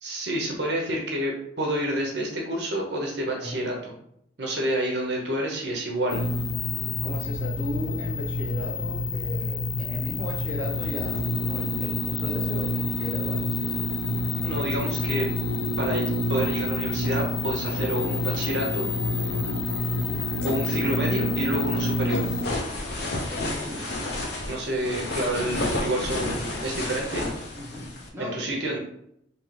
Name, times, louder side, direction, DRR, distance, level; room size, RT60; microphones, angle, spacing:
voice 1, 0.0-3.9 4.4-6.2 14.4-15.3 15.8-18.9 20.4-22.3 24.5-27.3 28.2-28.8, right 1 dB, 60° right, 0 dB, 0.8 m, -28 dB
voice 2, 3.3-3.7 7.0-13.8 19.2-19.7 23.3-23.9 27.5-28.6, left 1 dB, 15° right, -6 dB, 1.1 m, -36 dB
sound 1, 6.1-22.4, left 2 dB, 90° left, 0.5 m, -27 dB
sound 2, 22.2-28.1, left 2 dB, 55° left, 0.8 m, -31 dB
3.7 x 2.9 x 3.2 m, 0.74 s
head